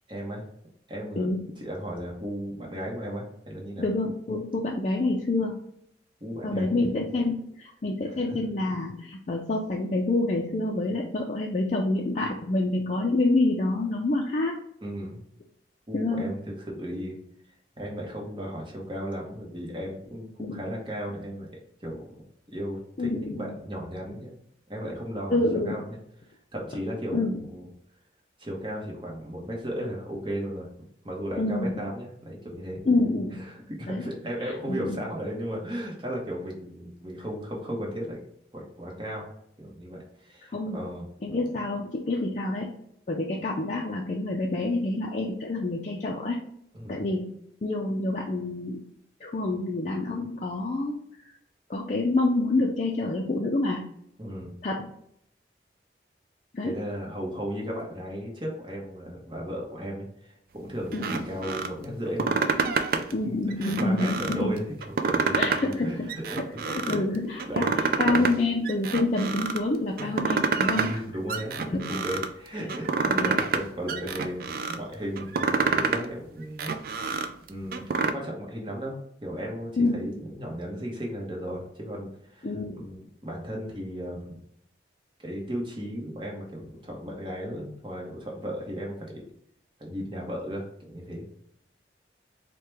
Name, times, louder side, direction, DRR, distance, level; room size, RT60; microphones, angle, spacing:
voice 1, 0.1-0.5 0.9-1.3 1.6-3.9 6.2-6.8 8.0-8.2 14.8-15.3 15.9-17.2 17.8-21.5 21.8-22.1 22.5-24.3 24.7-25.8 26.3-27.7 28.4-30.7 31.0-32.8 33.5-38.2 38.5-39.3 39.6-41.0 46.7-47.1 54.2-54.6 56.6-62.3 62.7-67.0 67.4-67.8 70.0-70.1 70.7-77.0 77.5-84.4 85.2-89.2 89.8-91.3, equal, 25° right, -1 dB, 1.0 m, -35 dB
voice 2, 1.2-1.5 3.8-5.5 6.4-14.5 15.9-16.3 20.4-20.6 23.0-23.6 25.3-25.7 27.1-27.4 31.4-31.8 32.9-33.5 33.9-34.1 34.4-35.0 40.5-40.8 41.2-42.7 43.1-46.4 46.9-47.3 47.6-48.8 49.2-51.3 51.7-53.8 54.6-54.9 56.5-56.7 60.9-61.2 63.1-64.5 65.4-66.1 66.4-71.0 71.7-72.1 72.5-72.7 73.1-73.4 79.8-80.0 82.4-82.9, left 2 dB, 40° left, -1 dB, 0.4 m, -27 dB
sound 1, 60.9-61.7 62.1-63.1 63.5-64.4 64.8-65.8 66.1-67.0 67.4-68.3 68.6-69.6 70.0-71.0 71.3-72.3 72.7-73.6 73.9-74.8 75.2-76.0 76.4-78.1, right 4 dB, 50° right, 0.3 m, -27 dB
4.6 x 2.2 x 3.3 m, 0.73 s
head